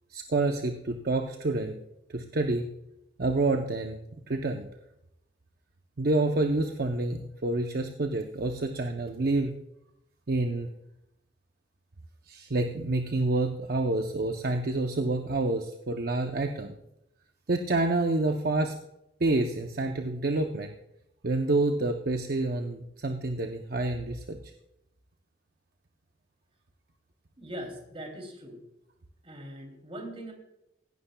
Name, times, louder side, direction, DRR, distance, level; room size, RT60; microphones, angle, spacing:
voice 1, 0.1-1.7 2.1-2.7 3.2-4.0 4.3-4.7 6.0-9.5 10.3-10.7 12.3-16.8 17.5-18.8 19.2-20.7 21.2-24.4, right 2 dB, 55° right, 4 dB, 0.7 m, -28 dB
voice 2, 27.4-28.6 29.2-30.3, equal, 30° right, 3 dB, 2.9 m, -41 dB
16.5 x 11.5 x 2.3 m, 0.84 s
head